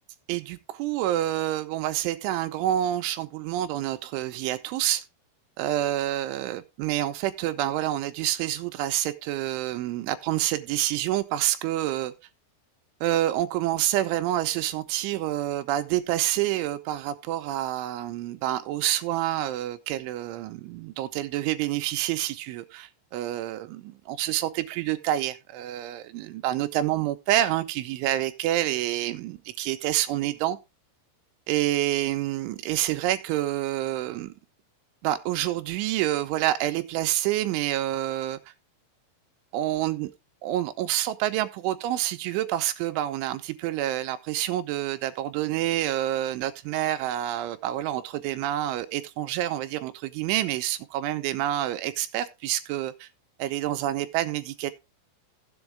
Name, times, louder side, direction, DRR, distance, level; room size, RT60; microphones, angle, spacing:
voice 1, 0.3-5.0 5.6-12.1 13.0-30.6 31.5-34.3 35.0-38.4 39.5-40.1 40.4-53.1 53.4-54.7, right 13 dB, 80° right, 3.0 m, -28 dB
14.0 x 8.0 x 3.5 m
omnidirectional pair, 5.8 m